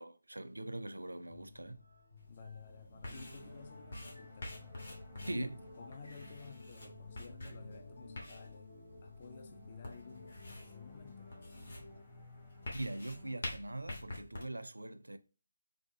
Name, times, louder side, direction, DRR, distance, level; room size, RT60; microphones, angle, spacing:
voice 1, 0.0-1.8 5.3-5.6 12.7-15.2, right 1 dB, 75° right, 0.4 m, -41 dB
sound 1, 1.3-12.0, left 2 dB, 80° left, 1.3 m, -56 dB
sound 2, 2.2-14.4, left 2 dB, 50° left, 1.1 m, -48 dB
voice 2, 2.3-5.5 5.8-8.7 9.0-11.3, left 5 dB, 30° left, 0.3 m, -53 dB
sound 3, 3.1-13.4, left 2 dB, 10° left, 0.7 m, -56 dB
3.5 x 2.6 x 2.9 m
figure-of-eight pair, 155°, 0 cm